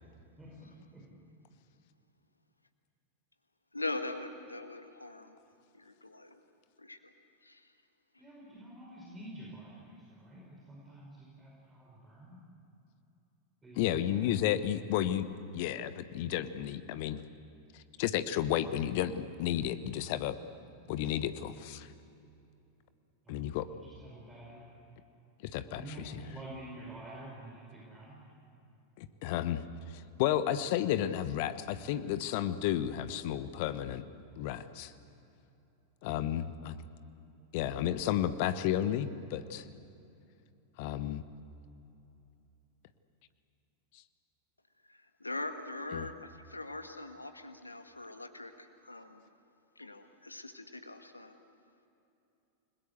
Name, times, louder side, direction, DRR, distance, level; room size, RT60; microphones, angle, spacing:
voice 1, 0.4-1.2 8.2-12.4 13.6-14.3 23.2-24.7 25.8-28.2, right 1 dB, 15° right, -3 dB, 5.3 m, -49 dB
voice 2, 3.7-5.4 5.7-6.4 6.8-7.1 7.4-7.6 44.9-49.2 49.8-51.4, left 2 dB, 85° left, 8 dB, 1.7 m, -42 dB
voice 3, 13.7-15.2 15.5-17.2 17.7-20.3 20.9-21.9 23.3-23.7 25.4-26.2 29.0-29.6 29.9-34.0 34.4-34.9 36.0-36.7 37.5-39.7 40.8-41.2 45.9-46.1, left 11 dB, 50° left, 13 dB, 1.1 m, -32 dB
29.0 x 21.0 x 8.2 m, 2.8 s
figure-of-eight pair, 90°, 0 cm